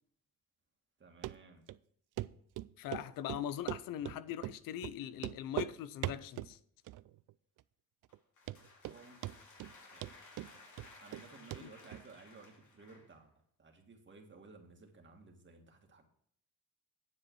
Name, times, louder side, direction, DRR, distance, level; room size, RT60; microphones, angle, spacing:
voice 1, 1.0-1.6 8.9-9.3 9.9-10.1 11.0-13.3 13.6-16.0, right 3 dB, 35° right, 2.1 m, -56 dB
Run, 1.2-1.3 1.7-1.8 2.2-2.3 2.6-3.0 3.3-4.2 4.4-4.6 4.8-4.9 5.2-5.7 6.0-6.5 6.9-7.3 7.6-7.7 8.1-8.2 8.5-9.0 9.2-9.7 10.0-11.2 11.5-11.6 11.9-12.0, right 15 dB, 65° right, 0.5 m, -39 dB
voice 2, 2.8-6.6 11.6-11.7, left 10 dB, 85° left, 0.6 m, -41 dB
sound 1, 8.1-13.2, left 3 dB, 65° left, 3.0 m, -58 dB
9.6 x 7.5 x 4.7 m
cardioid pair, 100°, 33 cm